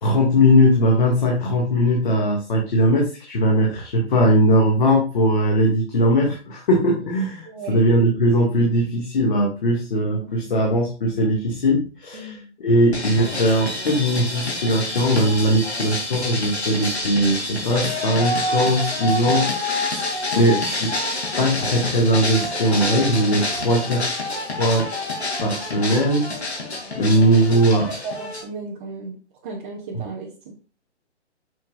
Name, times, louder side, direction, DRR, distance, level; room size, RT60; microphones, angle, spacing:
voice 1, 0.0-19.5 20.4-20.9 21.4-24.0 24.3-24.9 25.4-26.5 27.0-27.9, equal, 45° left, -1 dB, 2.1 m, -19 dB
voice 2, 7.4-7.9 10.4-10.5 12.1-12.5 20.3-20.6 27.2-27.3 28.0-29.1 29.4-30.5, right 3 dB, 10° right, -5 dB, 0.5 m, -35 dB
sound 1, 12.9-28.4, left 2 dB, 65° left, 2.7 m, -27 dB
7.5 x 5.7 x 2.5 m, 0.34 s
figure-of-eight pair, 130°, 35 cm